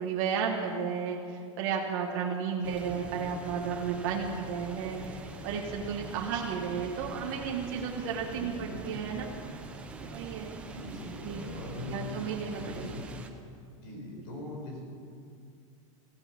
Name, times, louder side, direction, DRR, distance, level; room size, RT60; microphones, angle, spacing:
voice 1, 0.0-9.3 10.0-10.5 11.2-11.5 11.9-12.9, right 6 dB, 40° right, -2 dB, 1.5 m, -33 dB
sound 1, 2.6-13.3, right 3 dB, 5° right, 0.7 m, -44 dB
voice 2, 8.3-8.8 10.7-12.2 12.6-13.0 13.8-14.8, left 1 dB, 40° left, 0 dB, 4.7 m, -41 dB
15.5 x 15.0 x 6.0 m, 2.4 s
supercardioid pair, 175°, 17 cm